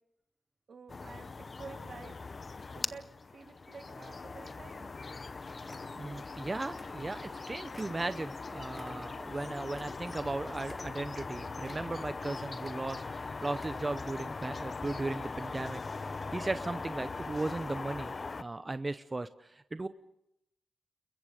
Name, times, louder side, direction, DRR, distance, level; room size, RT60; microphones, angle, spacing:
voice 1, 0.7-2.2 2.7-4.9, right 5 dB, 70° right, 8 dB, 1.7 m, -50 dB
sound 1, 0.9-18.4, left 4 dB, 45° left, 0.7 m, -41 dB
sound 2, 4.1-4.8 5.1-5.3 5.6-6.4 6.7-7.4 7.7-10.3 10.6-11.3 11.6-12.2 12.5-13.1 13.5-14.1 14.5-14.6, left 1 dB, 15° left, 1.6 m, -54 dB
voice 2, 5.4-19.9, right 2 dB, 30° right, 11 dB, 0.7 m, -37 dB
30.0 x 21.5 x 5.1 m, 0.83 s
cardioid pair, 60°, 0 cm